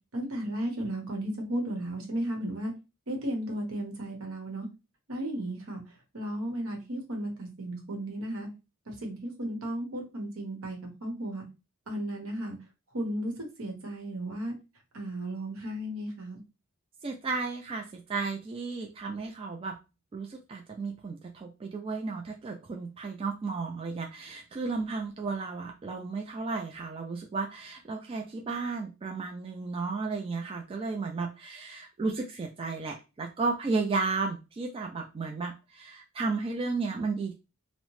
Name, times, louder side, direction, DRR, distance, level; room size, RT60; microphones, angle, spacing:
voice 1, 0.1-2.7 3.1-4.7 5.1-5.8 6.1-8.5 8.9-11.5 11.9-12.6 12.9-14.5 14.9-16.4, right 1 dB, 70° right, 2 dB, 1.0 m, -34 dB
voice 2, 17.0-19.7 20.1-37.3, right 4 dB, 25° right, 2 dB, 0.3 m, -33 dB
2.8 x 2.0 x 3.0 m, 0.28 s
head